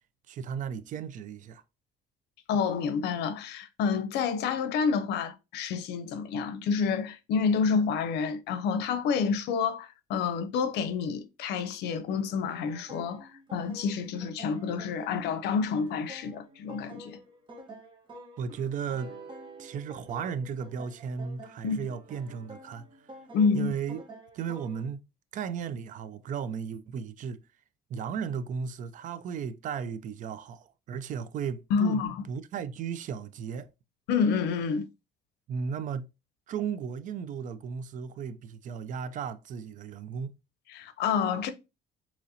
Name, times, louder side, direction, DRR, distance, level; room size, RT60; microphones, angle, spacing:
voice 1, 0.3-1.6 18.4-19.1 19.6-22.8 23.5-24.0 24.3-25.1 25.3-27.4 27.9-33.7 35.5-36.1 36.5-40.4, right 7 dB, 50° right, 0.4 m, -35 dB
voice 2, 2.5-17.2 21.6-21.9 23.3-23.7 31.7-32.2 34.1-34.9 40.7-41.5, left 6 dB, 80° left, 0.6 m, -28 dB
sound 1, 12.1-24.9, right 1 dB, 30° right, 1.1 m, -50 dB
sound 2, 19.0-21.3, right 6 dB, 85° right, 1.0 m, -49 dB
4.0 x 3.0 x 2.7 m
cardioid pair, 110°, 17 cm